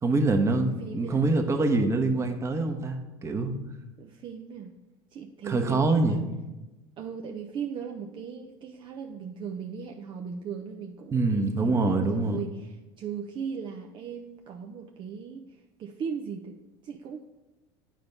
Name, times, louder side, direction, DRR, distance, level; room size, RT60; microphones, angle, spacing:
voice 1, 0.0-3.5 5.4-6.3 11.1-12.4, right 3 dB, 25° right, 5 dB, 1.2 m, -25 dB
voice 2, 0.8-1.3 4.0-4.7 5.1-6.3 7.0-16.6 16.8-17.2, right 6 dB, 45° right, 3 dB, 0.7 m, -38 dB
9.2 x 4.4 x 5.3 m, 1.1 s
supercardioid pair, 100°, 12 cm